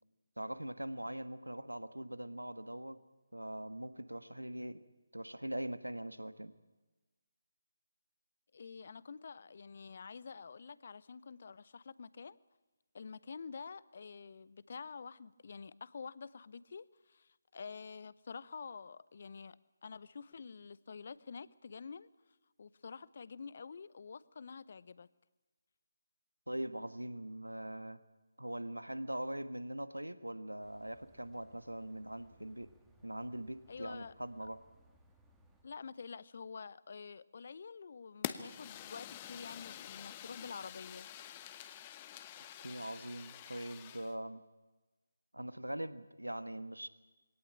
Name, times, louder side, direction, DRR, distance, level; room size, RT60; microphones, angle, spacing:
voice 1, 0.4-3.0 3.3-4.8 5.1-6.5 26.5-28.0 28.4-32.7 33.0-34.6 42.6-44.4 45.3-46.9, right 1 dB, 85° right, 1.4 m, -42 dB
voice 2, 8.5-12.4 12.9-19.6 19.8-22.1 22.6-25.1 33.7-34.1 35.6-41.1, left 5 dB, 45° left, 0.7 m, -48 dB
sound 1, 30.6-35.6, right 1 dB, 5° right, 1.9 m, -66 dB
Fire, 38.2-44.1, left 11 dB, 25° left, 1.0 m, -47 dB
22.5 x 17.5 x 8.8 m
figure-of-eight pair, 150°, 0 cm